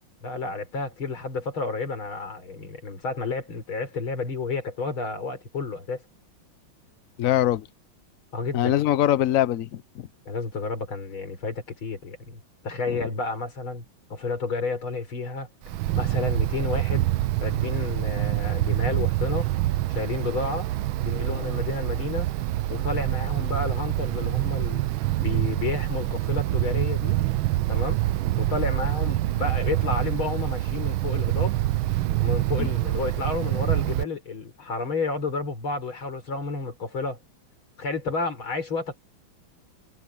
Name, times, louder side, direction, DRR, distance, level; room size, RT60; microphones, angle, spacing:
voice 1, 0.2-6.0 8.3-8.7 10.3-13.8 14.1-15.5 16.0-17.1 17.4-19.5 19.9-20.7 21.0-22.3 22.7-24.8 25.2-27.2 27.7-28.0 28.4-31.6 32.2-37.2 37.8-39.0, left 3 dB, 90° left, 5.2 m, -31 dB
voice 2, 7.2-7.7 8.5-10.1 12.9-13.1 32.6-32.7, left 13 dB, 65° left, 0.8 m, -23 dB
Wind, 15.6-34.0, right 15 dB, 85° right, 1.5 m, -26 dB
omnidirectional pair, 2.2 m